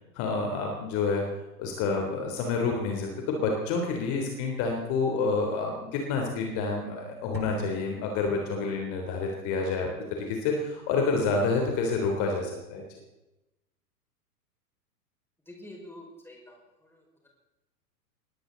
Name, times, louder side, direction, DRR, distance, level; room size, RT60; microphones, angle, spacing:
voice 1, 0.2-1.2 1.6-9.9 10.3-12.8, left 4 dB, 35° left, 2 dB, 3.5 m, -28 dB
sound 1, 7.3-9.0, right 4 dB, 80° right, 2.9 m, -45 dB
voice 2, 15.5-17.0, left 1 dB, 5° left, -1 dB, 5.4 m, -47 dB
21.0 x 17.0 x 4.0 m, 0.99 s
figure-of-eight pair, 105°, 49 cm